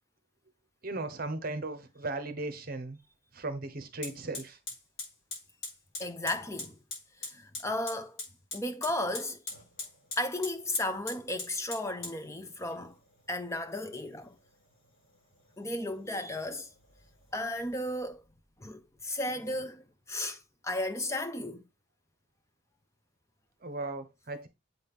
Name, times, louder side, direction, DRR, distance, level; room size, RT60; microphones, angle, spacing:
voice 1, 0.8-3.0 3.3-4.6 23.6-24.5, right 2 dB, 45° right, 0.9 m, -37 dB
Fire, 3.0-3.1 4.0-18.0, left 3 dB, 55° left, 5.2 m, -45 dB
voice 2, 6.0-6.8 7.2-8.2 8.5-9.4 10.2-13.0 13.3-14.4 15.6-16.7 17.3-18.2 18.6-21.6, left 1 dB, 15° left, 0.6 m, -34 dB
7.9 x 4.2 x 3.5 m
head